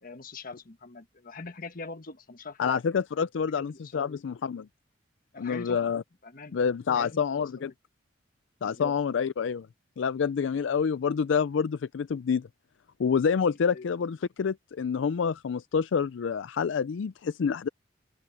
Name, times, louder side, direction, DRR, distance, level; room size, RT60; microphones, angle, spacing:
voice 1, 0.0-2.8 3.5-4.2 5.3-5.9 6.2-6.5 6.9-7.7 8.6-8.9 13.7-13.9, left 3 dB, 50° left, 1.4 m, -42 dB
voice 2, 2.6-4.7 5.4-6.0 6.5-7.7 8.6-9.7 10.0-12.5 13.0-17.7, left 6 dB, 75° left, 0.4 m, -27 dB
open air
head